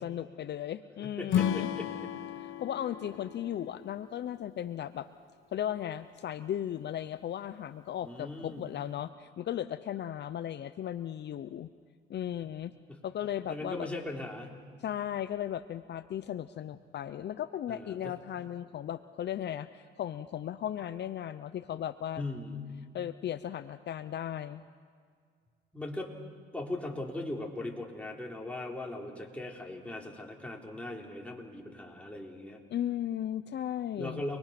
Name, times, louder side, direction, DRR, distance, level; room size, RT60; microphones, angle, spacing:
voice 1, 0.0-1.7 2.6-5.1 5.5-11.7 12.1-12.7 13.0-13.9 14.8-22.2 22.9-24.6 32.7-34.2, left 10 dB, 60° left, 12 dB, 0.7 m, -36 dB
voice 2, 1.0-2.1 8.0-8.7 12.9-13.0 13.5-14.5 17.7-18.2 22.2-22.6 25.7-26.1 26.5-32.6 34.0-34.4, left 2 dB, 5° left, -1 dB, 4.1 m, -39 dB
Acoustic guitar / Strum, 1.3-4.6, left 9 dB, 80° left, 1.3 m, -33 dB
29.5 x 21.5 x 6.0 m, 2.1 s
cardioid pair, 90°, 20 cm